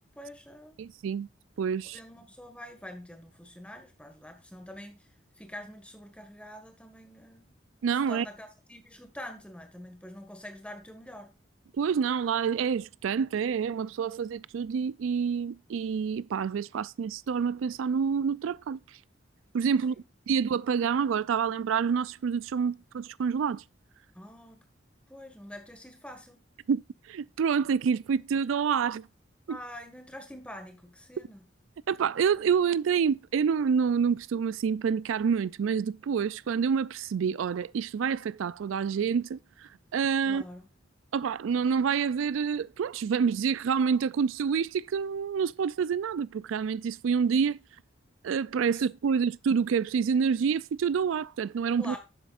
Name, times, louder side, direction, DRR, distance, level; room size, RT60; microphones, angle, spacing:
voice 1, 0.1-0.8 1.9-5.1 5.4-7.5 7.9-11.3 19.9-20.0 24.1-24.6 25.1-26.4 29.5-31.4 40.3-40.6 48.7-48.8 51.8-52.0, equal, 5° left, 1.7 m, -45 dB
voice 2, 0.8-1.3 1.6-2.0 7.8-8.3 11.8-18.8 19.5-20.0 20.3-23.6 26.7-26.8 27.1-29.1 29.5-29.6 31.9-40.4 41.1-47.6 48.2-52.0, right 6 dB, 85° right, 0.4 m, -27 dB
11.0 x 7.7 x 2.5 m
head